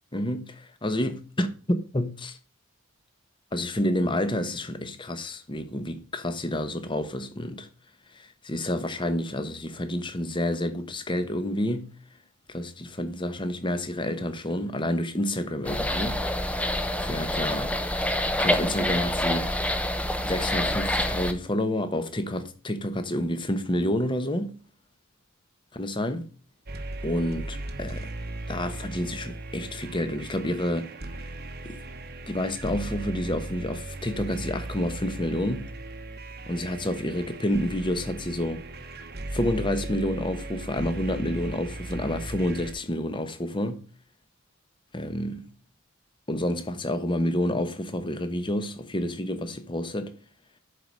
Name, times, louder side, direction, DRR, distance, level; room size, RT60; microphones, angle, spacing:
voice 1, 0.1-2.4 3.5-7.7 8.1-11.9 12.5-16.2 17.0-17.8 18.4-19.5 20.2-24.6 25.7-26.3 27.0-28.1 28.5-31.3 31.6-31.8 32.3-35.7 36.5-38.6 39.3-43.8 44.9-45.5 46.3-50.2, left 1 dB, 20° left, 0.9 m, -29 dB
sound 1, 15.6-21.3, left 1 dB, 5° left, 0.6 m, -27 dB
sound 2, 26.7-42.7, right 2 dB, 45° right, 1.0 m, -37 dB
11.0 x 4.7 x 5.2 m
head